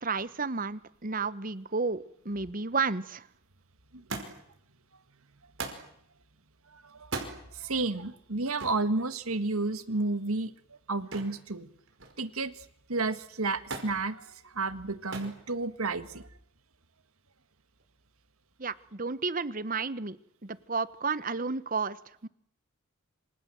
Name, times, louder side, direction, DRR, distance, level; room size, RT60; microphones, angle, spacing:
voice 1, 0.0-3.2 18.6-20.2 20.4-22.0 22.2-22.3, right 4 dB, 40° right, 16 dB, 1.0 m, -32 dB
Thump thud, 4.1-4.6 5.6-5.9 7.0-7.4 8.6-8.9 11.1-11.4 11.8-12.3 13.7-14.0 15.1-15.4 16.3-16.8 17.8-17.9, right 3 dB, 65° right, 5.3 m, -38 dB
voice 2, 6.7-7.1 7.5-11.7 12.2-16.3, right 3 dB, 90° right, 12 dB, 1.8 m, -32 dB
27.0 x 27.0 x 7.8 m, 0.71 s
head